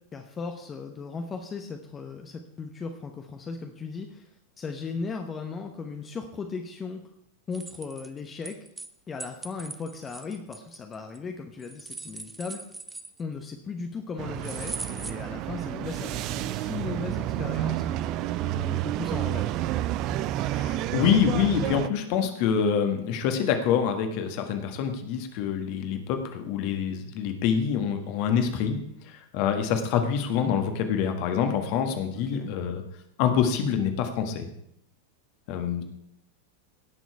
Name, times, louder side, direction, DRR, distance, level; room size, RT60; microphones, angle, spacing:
voice 1, 0.1-7.0 7.5-8.6 9.1-12.6 13.2-18.0 18.5-19.6 30.4-30.6 32.3-32.5, left 4 dB, 20° left, 5 dB, 1.0 m, -37 dB
sound 1, 7.5-8.9 9.2-11.2 11.6-13.5 14.4-15.1, right 3 dB, 10° right, 0.8 m, -40 dB
sound 2, 14.2-21.9, right 13 dB, 40° right, 0.5 m, -30 dB
voice 2, 20.4-28.8 29.0-32.8 33.2-34.5 35.5-35.8, left 7 dB, 45° left, 6 dB, 1.6 m, -26 dB
17.5 x 6.2 x 4.7 m, 0.73 s
figure-of-eight pair, 90°, 0 cm